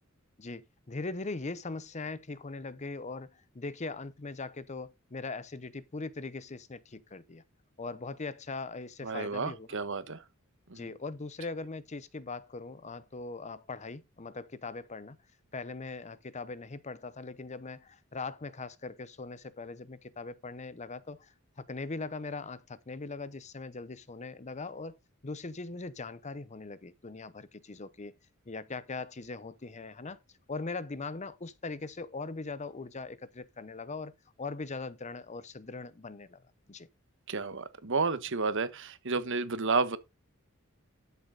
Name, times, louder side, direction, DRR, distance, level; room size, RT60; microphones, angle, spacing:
voice 1, 0.4-7.4 7.8-9.7 10.7-15.2 15.5-25.0 25.2-28.1 28.5-30.2 30.5-34.1 34.4-36.4 36.7-36.9, left 3 dB, 35° left, 0.7 m, -40 dB
voice 2, 9.0-10.2 10.7-10.9 37.3-40.0, right 4 dB, 60° right, 1.2 m, -31 dB
12.5 x 7.0 x 3.9 m
head